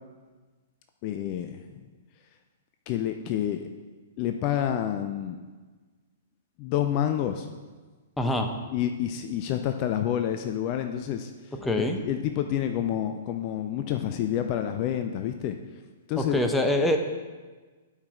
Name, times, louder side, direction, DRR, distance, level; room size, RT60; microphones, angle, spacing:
voice 1, 1.0-1.9 2.9-3.7 4.2-5.4 6.6-7.5 8.7-15.6 16.1-16.4, left 10 dB, 35° left, 7 dB, 0.5 m, -29 dB
voice 2, 8.2-8.5 11.6-12.0 16.2-17.0, left 1 dB, 5° left, 5 dB, 0.7 m, -24 dB
12.0 x 4.9 x 4.4 m, 1.3 s
figure-of-eight pair, 110°, 0 cm